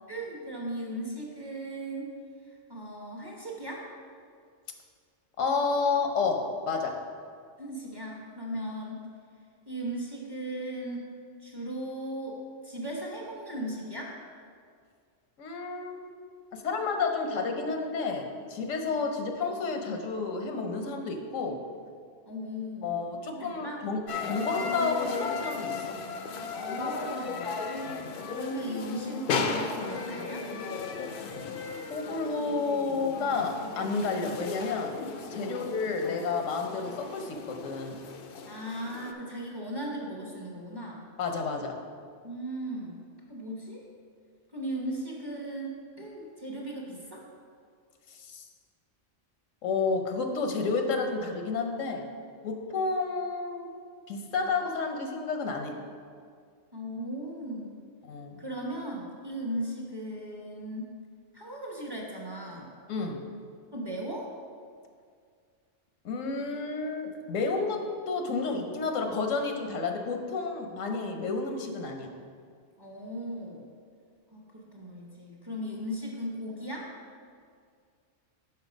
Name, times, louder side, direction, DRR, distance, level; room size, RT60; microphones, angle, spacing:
voice 1, 0.1-2.1 2.7-3.9 7.6-9.1 9.7-11.1 11.4-12.4 12.6-14.1 22.2-23.8 26.5-30.5 35.4-35.7 38.5-41.0 42.2-43.0 43.3-43.8 44.5-47.2 56.7-57.8 58.4-60.9 61.3-62.7 63.7-64.3 72.8-73.6 74.3-76.9, right 1 dB, 20° right, -3 dB, 0.9 m, -37 dB
voice 2, 5.4-6.9 15.4-16.1 16.6-21.6 22.8-25.9 27.8-28.0 31.9-35.0 35.3-38.0 41.2-41.8 48.2-48.4 49.6-52.1 52.4-53.7 54.1-55.8 58.0-58.4 62.9-63.2 66.0-72.1, left 4 dB, 85° left, 4 dB, 1.1 m, -30 dB
sound 1, 24.1-39.1, left 5 dB, 60° left, 0.6 m, -35 dB
5.8 x 5.5 x 5.2 m, 2.1 s
omnidirectional pair, 1.3 m